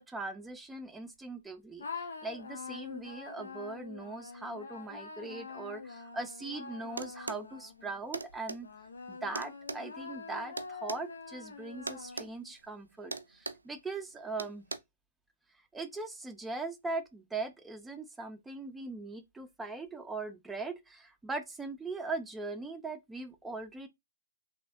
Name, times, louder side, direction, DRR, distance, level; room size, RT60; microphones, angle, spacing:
voice 1, 0.0-8.7 9.1-14.6 15.7-23.9, right 3 dB, 5° right, 0.5 m, -40 dB
sound 1, 1.8-8.0 8.6-12.5, left 5 dB, 75° left, 0.7 m, -45 dB
sound 2, 7.0-7.5 8.1-8.6 9.3-11.0 11.9-12.3 12.6-12.8 13.1-13.7 14.4-14.8, right 3 dB, 90° right, 0.4 m, -39 dB
3.3 x 2.8 x 2.5 m
figure-of-eight pair, 125°, 0 cm